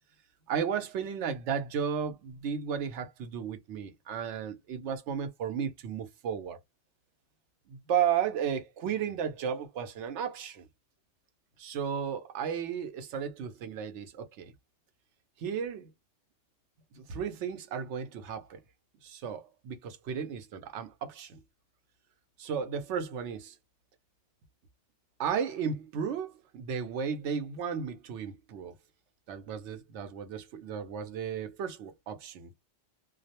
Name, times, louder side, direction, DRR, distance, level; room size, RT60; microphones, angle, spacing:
voice 1, 0.5-6.6 7.7-10.7 11.6-14.5 15.4-15.9 16.9-18.6 19.0-21.4 22.4-23.6 25.2-28.7 29.3-32.5, right 7 dB, 80° right, 0.9 m, -34 dB
2.2 x 2.0 x 2.7 m
omnidirectional pair, 1.2 m